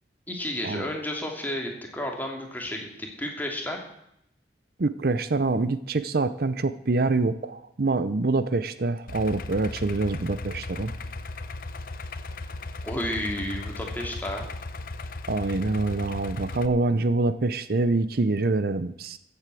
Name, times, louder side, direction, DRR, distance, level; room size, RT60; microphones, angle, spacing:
voice 1, 0.3-3.8 12.8-14.5, left 1 dB, 10° left, 1 dB, 2.7 m, -32 dB
voice 2, 4.8-10.9 15.3-19.2, right 3 dB, 55° right, 13 dB, 0.6 m, -25 dB
Idling, 9.1-16.7, left 2 dB, 50° left, 0.8 m, -37 dB
14.5 x 8.3 x 7.6 m, 0.77 s
head